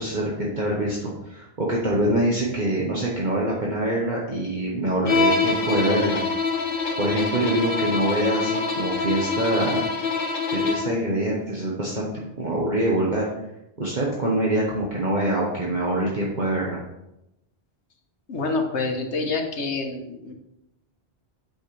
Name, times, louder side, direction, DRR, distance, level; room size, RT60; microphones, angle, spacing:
voice 1, 0.0-6.2 7.0-9.8 10.5-12.1 12.4-13.3 13.8-16.8, right 1 dB, 45° right, -4 dB, 1.3 m, -25 dB
Bowed string instrument, 5.1-11.0, left 4 dB, 55° left, 1.2 m, -25 dB
voice 2, 18.3-20.3, left 3 dB, 85° left, 4 dB, 1.4 m, -27 dB
8.7 x 6.3 x 3.2 m, 0.88 s
omnidirectional pair, 1.1 m